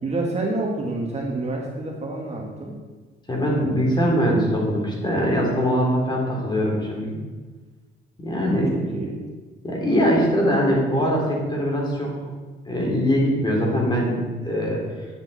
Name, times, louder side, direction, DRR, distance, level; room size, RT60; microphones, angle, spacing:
voice 1, 0.0-2.8 8.5-9.2, right 2 dB, 35° right, -1 dB, 2.0 m, -28 dB
voice 2, 3.3-7.2 8.2-8.7 9.6-12.1 12.7-14.8, equal, 20° left, -2 dB, 3.4 m, -22 dB
9.6 x 8.5 x 4.2 m, 1.3 s
cardioid pair, 90°, 20 cm